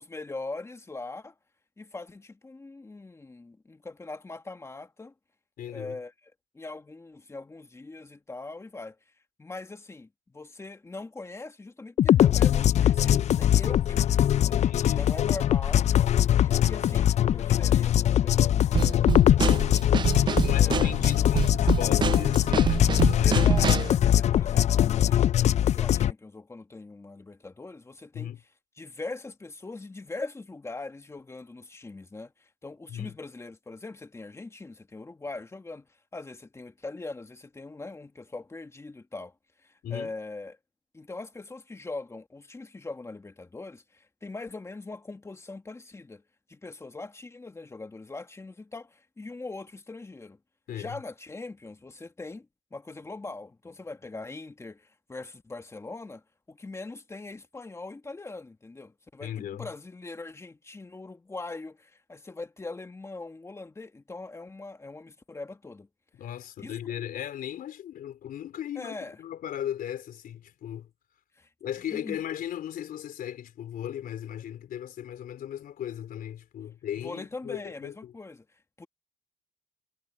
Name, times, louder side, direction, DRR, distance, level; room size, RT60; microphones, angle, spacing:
voice 1, 0.0-1.3 1.8-5.1 5.7-6.1 6.5-9.0 9.4-14.6 14.9-15.9 16.3-19.7 20.5-20.9 23.2-28.3 28.8-39.3 39.6-40.6 40.9-46.2 46.5-50.4 50.8-56.2 56.5-65.9 66.6-66.8 68.8-69.2 71.4-71.5 71.9-72.2 77.0-78.9, left 3 dB, 15° left, 1.8 m, -41 dB
voice 2, 5.6-6.0 14.6-15.1 20.3-23.4 28.1-28.4 32.9-33.1 39.8-40.1 50.7-51.0 59.2-59.7 66.2-70.9 71.6-78.1, left 10 dB, 60° left, 4.0 m, -37 dB
sound 1, 12.0-26.1, left 11 dB, 45° left, 0.4 m, -22 dB
Drum kit / Snare drum, 18.7-24.0, right 7 dB, 25° right, 0.4 m, -27 dB
cardioid pair, 110°, 17 cm